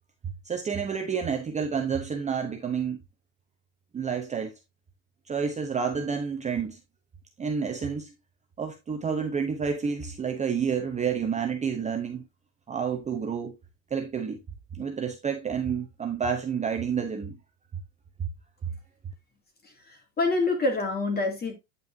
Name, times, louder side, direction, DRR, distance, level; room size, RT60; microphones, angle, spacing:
voice 1, 0.4-3.0 3.9-4.5 5.3-6.8 7.4-8.1 8.6-12.2 12.7-13.6 13.9-14.4 14.7-17.4, right 6 dB, 15° right, 0.8 m, -29 dB
voice 2, 19.6-21.5, left 3 dB, 20° left, 2.7 m, -27 dB
9.3 x 5.6 x 2.7 m
supercardioid pair, 135°, 48 cm